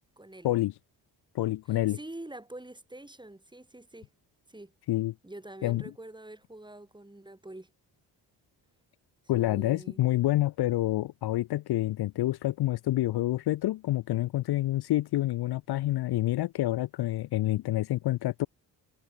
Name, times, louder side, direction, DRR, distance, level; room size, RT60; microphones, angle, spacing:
voice 1, 0.2-0.6 1.7-4.1 4.5-4.7 5.2-7.7 9.3-10.0, right 1 dB, 10° right, 5.2 m, -46 dB
voice 2, 1.3-2.0 4.9-5.1 5.6-5.8 9.3-18.5, left 15 dB, 60° left, 0.7 m, -28 dB
cardioid pair, 75°, 43 cm